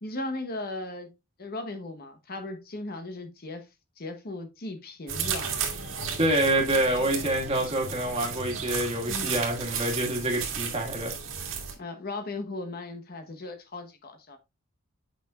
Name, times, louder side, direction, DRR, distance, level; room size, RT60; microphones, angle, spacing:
voice 1, 0.0-1.1 1.4-3.7 4.0-5.6 9.1-9.4 11.8-14.4, left 2 dB, 45° left, 1.0 m, -37 dB
sound 1, 5.1-11.7, right 6 dB, 65° right, 1.7 m, -34 dB
voice 2, 6.2-11.1, right 1 dB, 25° right, 1.7 m, -26 dB
8.3 x 5.7 x 2.4 m
head